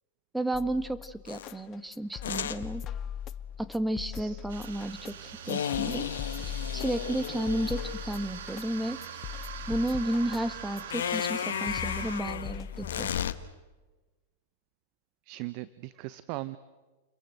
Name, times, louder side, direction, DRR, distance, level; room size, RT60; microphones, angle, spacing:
voice 1, 0.3-2.8 3.6-6.1 6.4-9.0 9.7-13.1, right 1 dB, 5° right, 12 dB, 1.5 m, -32 dB
sound 1, 0.5-13.5, left 9 dB, 35° left, 0.8 m, -41 dB
sound 2, 1.3-1.5 2.2-2.6 5.5-8.0 10.9-13.3, left 9 dB, 75° left, 1.2 m, -34 dB
voice 2, 4.1-4.5 15.3-16.6, right 19 dB, 50° right, 16 dB, 0.9 m, -39 dB
sound 3, 4.5-12.2, right 8 dB, 65° right, 2.6 m, -43 dB
30.0 x 22.5 x 7.9 m, 1.2 s
hypercardioid pair, 105°, 0 cm